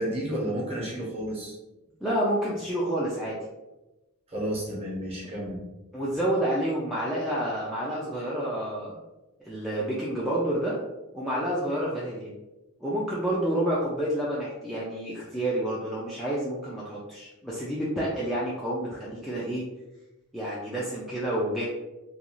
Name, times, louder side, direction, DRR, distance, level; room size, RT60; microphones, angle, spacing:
voice 1, 0.0-1.5 4.3-5.6, right 1 dB, 30° right, -4 dB, 0.8 m, -31 dB
voice 2, 2.0-3.4 5.9-9.0 9.4-10.8 11.1-12.3 12.8-19.6 20.3-21.6, right 1 dB, ahead, -7 dB, 0.3 m, -29 dB
2.5 x 2.3 x 2.9 m, 1.0 s
head